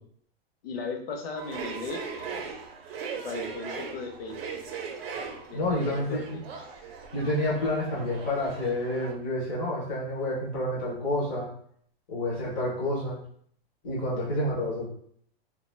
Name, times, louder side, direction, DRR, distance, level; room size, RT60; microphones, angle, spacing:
voice 1, 0.6-2.5 3.2-4.4 5.5-6.4, left 4 dB, 65° left, 4 dB, 0.6 m, -37 dB
sound 1, 1.3-9.1, right 5 dB, 70° right, 0.6 m, -39 dB
voice 2, 5.5-6.4 7.1-11.5 12.1-13.2 13.8-14.9, left 1 dB, 15° left, -5 dB, 0.4 m, -29 dB
2.3 x 2.2 x 3.1 m, 0.62 s
supercardioid pair, 175°, 31 cm